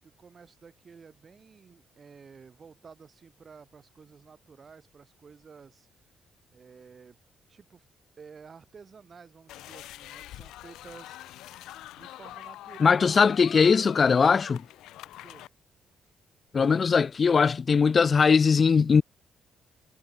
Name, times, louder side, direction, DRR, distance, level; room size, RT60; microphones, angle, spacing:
voice 1, 0.0-5.9 6.5-7.2 7.5-7.9 8.2-11.2 11.9-13.3 15.2-15.5, right 5 dB, 40° right, 7.3 m, -51 dB
sound 1, 9.5-15.5, left 15 dB, 90° left, 0.7 m, -44 dB
voice 2, 12.8-14.6 16.5-19.0, left 5 dB, 40° left, 0.5 m, -20 dB
cardioid pair, 90°, 0 cm